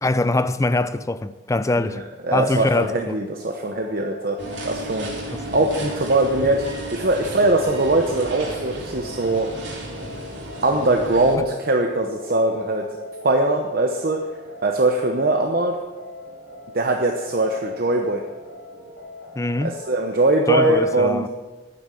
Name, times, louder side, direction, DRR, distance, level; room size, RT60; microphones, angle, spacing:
voice 1, 0.0-2.0 2.3-3.2 5.3-5.4 19.4-19.8 20.5-21.3, left 2 dB, 15° left, 0.4 m, -23 dB
voice 2, 1.8-4.4 4.6-5.1 5.5-9.5 10.6-12.8 13.2-14.2 14.6-15.8 16.7-18.2 19.6-21.3, right 2 dB, 55° right, 0.9 m, -21 dB
sound 1, 3.3-20.1, equal, 55° left, 4.2 m, -41 dB
sound 2, 4.4-11.4, right 1 dB, 70° right, 3.3 m, -34 dB
11.0 x 9.5 x 6.9 m
head